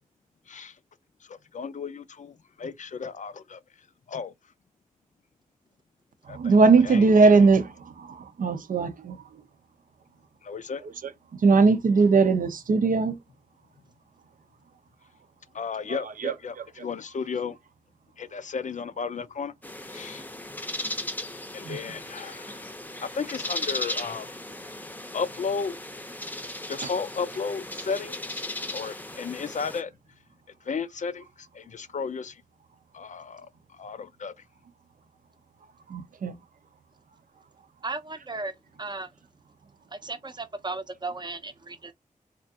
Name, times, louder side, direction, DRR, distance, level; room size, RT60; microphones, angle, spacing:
voice 1, 1.2-3.6 4.1-4.3 6.3-6.5 6.8-7.4 10.4-10.8 15.5-17.6 18.2-19.5 19.9-20.3 21.5-22.6 23.0-24.4 25.1-25.8 26.7-28.4 28.7-29.9 30.6-32.4 32.9-34.3, left 5 dB, 60° left, 0.4 m, -34 dB
voice 2, 6.3-9.2 10.8-11.1 11.4-13.2 15.9-16.9 21.6-21.8 35.9-36.4, right 4 dB, 75° right, 0.5 m, -21 dB
sound 1, 19.6-29.8, left 1 dB, 10° left, 0.6 m, -36 dB
voice 3, 37.8-39.1 39.9-41.9, right 3 dB, 30° right, 0.6 m, -35 dB
3.3 x 2.4 x 2.7 m
cardioid pair, 55°, 14 cm